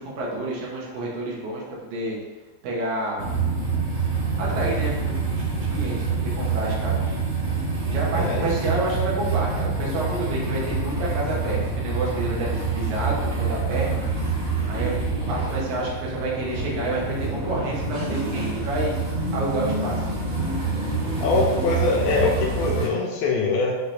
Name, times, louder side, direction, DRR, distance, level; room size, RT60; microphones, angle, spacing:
voice 1, 0.0-2.2 2.6-3.2 4.4-7.1 7.9-14.0 14.7-19.0 19.3-20.1, right 2 dB, 80° right, -4 dB, 2.5 m, -29 dB
sound 1, 3.2-22.9, right 4 dB, 55° right, 1.6 m, -26 dB
voice 2, 8.1-8.6 21.2-23.8, left 3 dB, 80° left, -1 dB, 1.7 m, -23 dB
6.0 x 2.7 x 3.2 m, 1.2 s
omnidirectional pair, 3.4 m